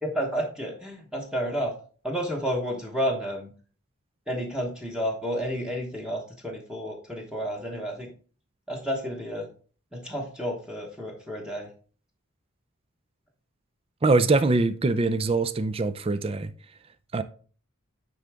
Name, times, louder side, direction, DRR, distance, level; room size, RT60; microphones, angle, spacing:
voice 1, 0.0-1.7 2.0-3.5 4.3-8.1 8.7-9.5 9.9-11.7, equal, 5° right, 1.1 m, -31 dB
voice 2, 14.0-16.5 17.1-17.2, right 3 dB, 25° right, 0.4 m, -23 dB
9.4 x 3.7 x 3.5 m
head